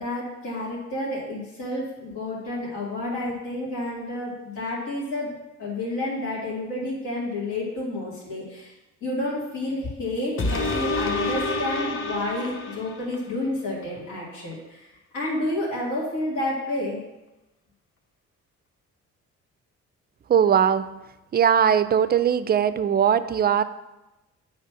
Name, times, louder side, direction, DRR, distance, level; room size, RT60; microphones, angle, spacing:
voice 1, 0.0-5.3 5.6-8.7 9.0-14.8 15.1-17.0, left 1 dB, 85° left, -6 dB, 2.3 m, -30 dB
sound 1, 10.4-13.3 13.8-13.9, left 2 dB, 40° left, 1.1 m, -28 dB
voice 2, 20.3-20.8 21.3-23.6, right 8 dB, 35° right, 13 dB, 0.4 m, -20 dB
8.5 x 3.3 x 5.8 m, 1.0 s
cardioid pair, 90°, 30 cm